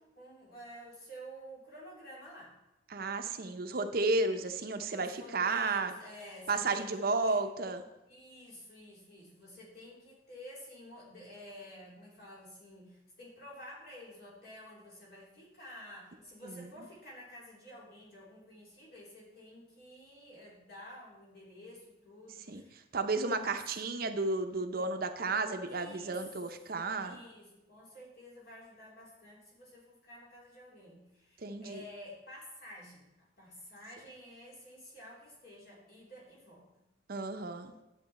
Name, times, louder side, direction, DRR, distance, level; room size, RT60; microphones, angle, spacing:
voice 1, 0.0-2.5 4.9-7.4 8.1-22.9 23.4-23.6 25.7-26.3 27.0-36.8, equal, 55° left, -4 dB, 3.2 m, -51 dB
voice 2, 2.9-5.9 6.5-7.8 16.4-16.7 22.5-22.6 22.9-27.2 31.4-31.8 37.1-37.7, right 3 dB, 50° right, 7 dB, 0.7 m, -32 dB
10.0 x 7.5 x 4.2 m, 0.96 s
head